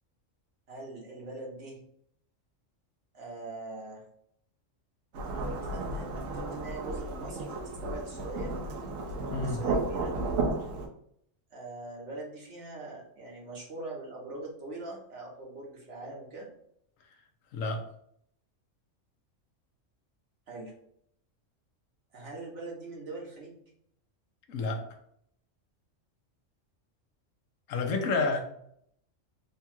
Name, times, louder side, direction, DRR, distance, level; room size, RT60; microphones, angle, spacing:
voice 1, 0.7-1.8 3.1-4.0 5.4-8.5 9.4-10.2 11.5-16.5 20.5-20.7 22.1-23.6 27.8-28.4, right 2 dB, 65° right, -2 dB, 1.5 m, -42 dB
Thunderstorm / Rain, 5.1-10.9, right 3 dB, 85° right, 1.1 m, -33 dB
voice 2, 9.3-9.6 17.5-17.8 24.5-24.8 27.7-28.4, left 3 dB, 85° left, 4 dB, 1.1 m, -29 dB
3.6 x 2.3 x 4.3 m, 0.70 s
omnidirectional pair, 1.3 m